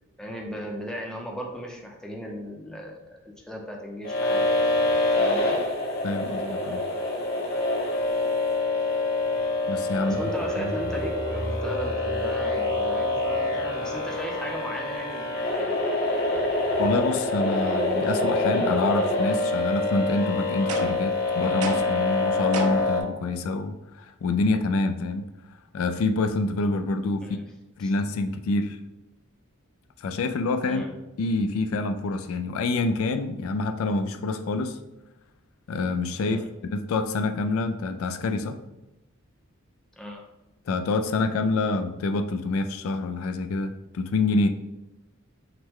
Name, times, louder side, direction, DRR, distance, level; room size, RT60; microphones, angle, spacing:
voice 1, 0.2-4.4 5.1-5.5 9.9-15.7 27.2-27.4 27.8-27.9 30.7-30.9 36.3-36.5 40.0-40.2, equal, 5° left, -1 dB, 0.6 m, -36 dB
sound 1, 4.0-23.0, left 2 dB, 45° left, 1.1 m, -26 dB
voice 2, 6.0-6.8 9.7-10.2 10.6-10.7 16.8-25.2 25.7-27.4 27.8-28.8 30.0-30.8 31.2-34.8 35.7-38.6 40.7-44.5, left 3 dB, 70° left, 7 dB, 0.3 m, -27 dB
sound 2, 10.1-15.7, right 1 dB, 70° right, 0.9 m, -35 dB
sound 3, 20.7-21.1 21.6-22.0 22.5-23.0, right 4 dB, 90° right, 0.5 m, -33 dB
5.7 x 2.2 x 3.6 m, 0.98 s
head